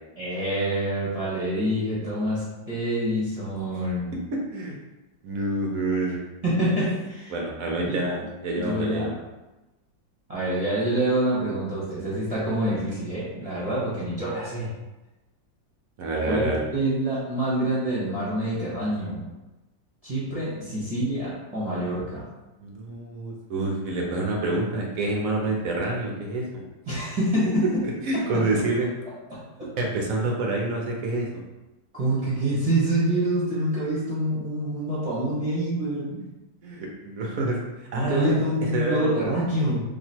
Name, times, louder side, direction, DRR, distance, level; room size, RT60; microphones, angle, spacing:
voice 1, 0.2-4.1 6.4-7.3 7.9-8.2 8.6-9.2 10.3-14.7 16.2-19.2 20.0-22.2 26.9-27.8 28.1-28.4 29.3-29.7 31.9-36.2 37.9-39.8, right 1 dB, 25° right, -9 dB, 1.0 m, -26 dB
voice 2, 4.3-4.8 5.2-6.2 7.3-9.1 16.0-16.6 22.6-26.6 28.0-28.9 29.8-31.4 36.6-37.6 37.9-38.3 38.7-39.1, right 2 dB, 65° right, -1 dB, 0.9 m, -27 dB
3.1 x 2.8 x 4.3 m, 1.1 s
omnidirectional pair, 2.0 m